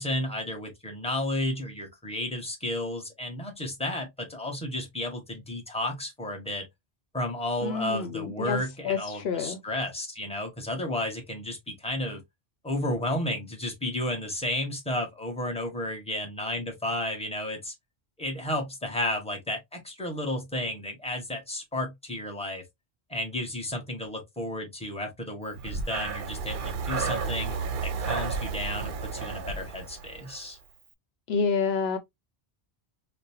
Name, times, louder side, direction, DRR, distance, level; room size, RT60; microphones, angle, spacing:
voice 1, 0.0-6.6 7.1-12.2 12.6-17.7 18.2-22.6 23.1-27.5 27.8-30.6, left 1 dB, 5° left, 1.1 m, -32 dB
voice 2, 7.6-8.6 8.8-9.6 31.3-32.0, left 5 dB, 80° left, 0.9 m, -28 dB
Breathing, 25.5-30.5, right 5 dB, 60° right, 0.7 m, -32 dB
5.0 x 2.1 x 2.7 m
omnidirectional pair, 1.1 m